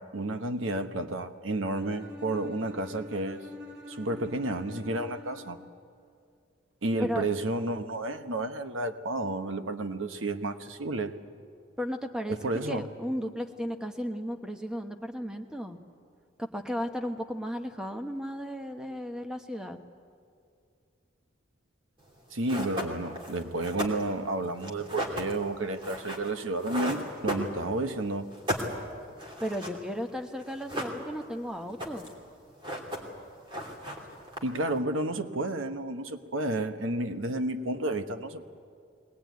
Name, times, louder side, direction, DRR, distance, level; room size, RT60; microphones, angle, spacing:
voice 1, 0.0-3.4 3.9-5.6 6.8-11.1 12.3-12.9 22.3-28.3 34.4-38.4, right 2 dB, 80° right, 8 dB, 1.1 m, -31 dB
Bowed string instrument, 1.7-5.7, left 2 dB, 50° right, 4.6 m, -45 dB
voice 2, 11.8-12.4 12.7-15.8 16.4-19.8 29.4-32.1, equal, 5° right, 4 dB, 1.0 m, -34 dB
sound 1, 22.1-22.2 22.5-27.9 28.2-29.8 30.1-30.2 30.4-31.3 31.6-32.2 32.5-33.2 33.5-34.7, equal, 25° right, 2.9 m, -36 dB
21.5 x 19.0 x 9.4 m, 2.4 s
head